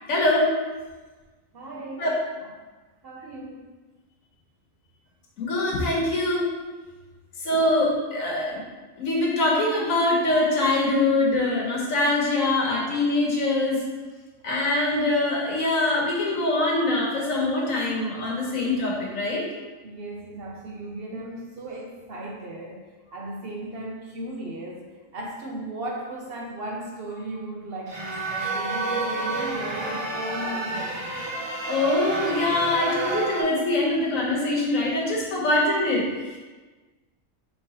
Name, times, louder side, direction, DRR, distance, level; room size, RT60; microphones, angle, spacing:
voice 1, 0.1-0.5 2.0-2.1 5.4-6.5 7.4-8.6 9.0-13.8 14.4-19.4 31.5-36.4, left 2 dB, 80° left, -3 dB, 1.4 m, -23 dB
voice 2, 1.5-2.2 3.0-3.6 19.8-31.0, right 1 dB, 60° right, -2 dB, 0.7 m, -36 dB
sound 1, 27.9-33.4, right 3 dB, 45° right, 0.3 m, -30 dB
4.8 x 3.4 x 2.8 m, 1.3 s
omnidirectional pair, 1.4 m